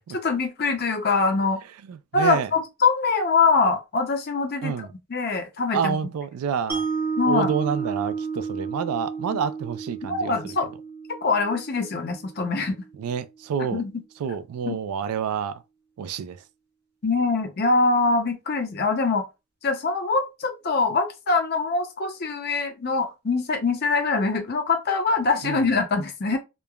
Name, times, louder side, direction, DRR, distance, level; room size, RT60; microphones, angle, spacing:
voice 1, 0.1-1.6 2.1-4.7 5.1-6.0 7.2-7.5 9.3-9.4 10.0-10.7 11.2-12.8 13.7-13.9 14.7-14.8 17.0-19.3 19.6-26.4, left 4 dB, 45° left, 0.5 m, -23 dB
voice 2, 1.9-2.5 4.6-4.9 5.7-6.8 7.3-10.6 13.0-13.8 14.2-15.6 16.0-16.4 25.4-25.7, right 7 dB, 85° right, 0.3 m, -28 dB
Mallet percussion, 6.7-12.9, right 5 dB, 10° right, 0.5 m, -32 dB
3.1 x 2.0 x 2.2 m
head